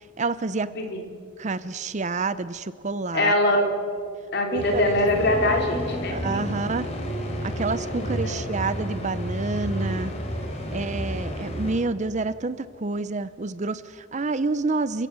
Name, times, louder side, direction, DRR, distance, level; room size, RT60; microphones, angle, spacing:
voice 1, 0.2-0.7 1.4-3.3 4.5-4.8 6.1-6.9 7.6-10.1 10.7-15.1, right 3 dB, 35° right, 15 dB, 0.6 m, -28 dB
voice 2, 0.7-1.1 3.1-3.7 4.3-6.6 7.9-8.5 10.6-11.0, left 1 dB, 55° left, 2 dB, 3.7 m, -24 dB
sound 1, 4.5-11.7, equal, 30° left, 3.8 m, -31 dB
30.0 x 16.5 x 6.9 m, 2.3 s
head